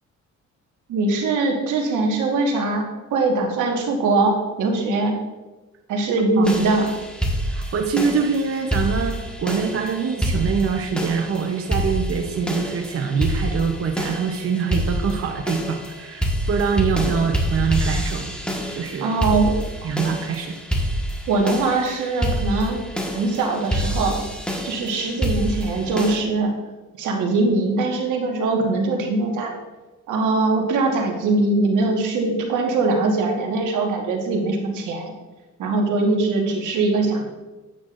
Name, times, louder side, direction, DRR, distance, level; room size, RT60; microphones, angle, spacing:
voice 1, 0.9-2.8 3.1-5.1 5.9-6.9 19.0-19.9 21.3-22.8 23.1-24.2 24.6-26.5 27.0-29.5 30.1-35.1 35.6-37.2, right 3 dB, 80° right, 1 dB, 1.5 m, -21 dB
sound 1, 6.4-26.2, equal, 5° left, 1.5 m, -27 dB
voice 2, 7.5-18.3 18.7-19.2 19.8-20.5, right 6 dB, 50° right, 3 dB, 0.8 m, -24 dB
9.2 x 8.6 x 2.5 m, 1.2 s
cardioid pair, 90°, 30 cm